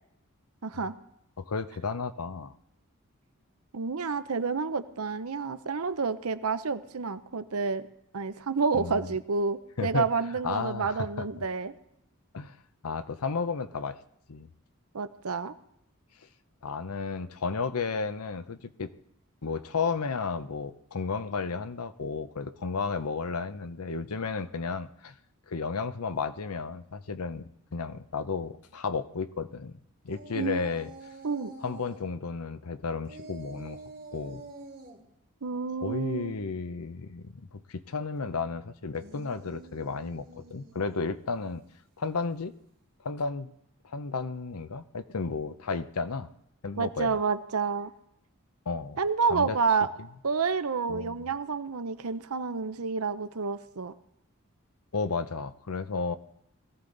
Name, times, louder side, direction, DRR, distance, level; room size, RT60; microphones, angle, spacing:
voice 1, 0.6-0.9 3.7-7.9 8.1-11.7 14.9-15.6 30.3-30.6 31.2-31.5 35.4-36.3 46.8-47.9 49.0-49.9 50.2-53.9, right 5 dB, 80° right, 12 dB, 0.8 m, -29 dB
voice 2, 1.4-2.5 8.7-9.1 9.8-10.1 10.4-11.3 12.3-12.6 12.8-14.0 14.3-14.5 16.6-18.9 19.4-25.1 25.5-29.8 30.0-30.9 31.6-33.8 34.1-34.4 35.8-41.6 42.0-42.5 43.0-43.5 43.8-46.3 46.6-47.2 48.7-49.0 49.3-49.6 50.9-51.3 54.9-56.2, left 4 dB, 90° left, 12 dB, 0.8 m, -33 dB
sound 1, 30.1-32.0 33.0-35.0 38.8-41.0, right 2 dB, 45° right, 2.9 m, -47 dB
21.0 x 15.0 x 4.0 m, 0.77 s
head